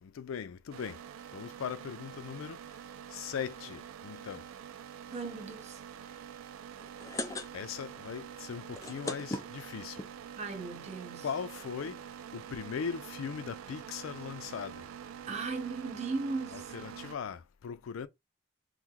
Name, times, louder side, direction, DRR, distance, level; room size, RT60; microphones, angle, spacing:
voice 1, 0.0-1.0 1.3-2.6 3.1-4.5 7.5-10.0 11.2-12.0 12.3-14.8 16.5-18.1, left 7 dB, 85° left, 0.4 m, -39 dB
sound 1, 0.7-17.2, right 8 dB, 85° right, 0.3 m, -46 dB
voice 2, 5.1-6.1 10.4-11.3 15.3-16.7, right 4 dB, 35° right, 0.7 m, -37 dB
sound 2, 6.8-7.9 8.2-8.3 8.6-10.1 10.8-10.9 11.1-11.2 11.4-11.6, left 2 dB, 15° left, 0.3 m, -38 dB
2.9 x 2.1 x 3.6 m
head